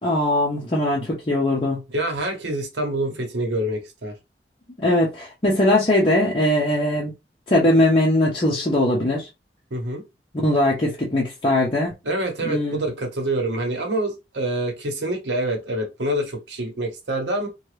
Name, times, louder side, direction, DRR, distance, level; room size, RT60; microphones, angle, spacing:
voice 1, 0.0-1.8 4.8-7.1 7.5-9.3 10.3-11.9 12.4-12.8, left 1 dB, 30° left, 0.7 m, -20 dB
voice 2, 1.9-4.1 9.7-10.0 12.0-17.5, right 1 dB, 80° right, 0.9 m, -26 dB
2.9 x 2.3 x 3.2 m
head